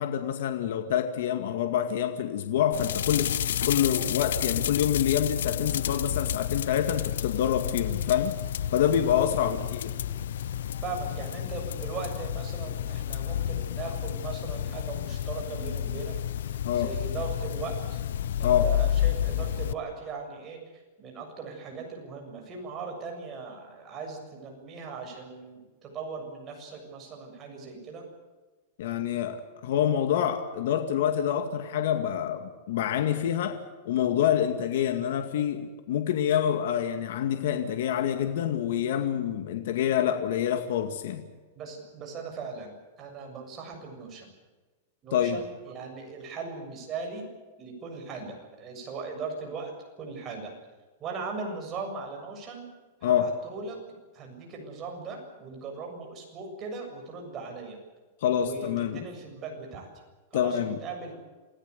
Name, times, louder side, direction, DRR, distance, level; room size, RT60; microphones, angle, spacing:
voice 1, 0.0-3.4 3.7-8.4 8.7-10.0 16.6-16.9 18.4-18.7 28.8-33.6 33.8-41.2 45.1-45.4 53.0-53.3 58.2-59.0 60.3-60.8, left 9 dB, 65° left, 7 dB, 2.2 m, -27 dB
sound 1, 2.7-19.7, left 10 dB, 80° left, 0.9 m, -30 dB
voice 2, 9.3-9.6 10.8-16.1 16.5-18.0 18.4-28.0 41.5-44.3 45.0-47.3 47.6-49.7 50.0-50.5 51.0-52.7 53.0-53.8 54.1-57.8 58.3-59.9 60.3-61.2, right 4 dB, 25° right, 2 dB, 7.3 m, -39 dB
28.0 x 17.0 x 8.3 m, 1.3 s
supercardioid pair, 160°, 0 cm